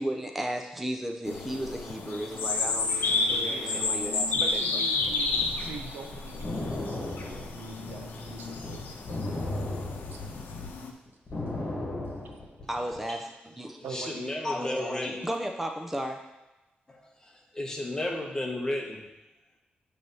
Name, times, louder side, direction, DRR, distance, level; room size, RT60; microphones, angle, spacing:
voice 1, 0.0-2.9 3.3-4.8 12.7-13.8 15.2-16.3, right 1 dB, 5° right, 3 dB, 0.6 m, -34 dB
sound 1, 1.3-10.9, left 3 dB, 85° left, 0.8 m, -31 dB
voice 2, 3.5-3.9 4.3-9.0 9.5-10.2 13.8-14.3, right 5 dB, 85° right, 4 dB, 0.8 m, -44 dB
sound 2, 5.0-10.7 11.1-13.0, left 2 dB, 35° left, 1.6 m, -36 dB
voice 3, 13.7-15.3 16.9-19.1, left 1 dB, 20° left, 0 dB, 1.1 m, -33 dB
7.6 x 3.3 x 5.4 m, 1.0 s
wide cardioid pair, 125°, 3 cm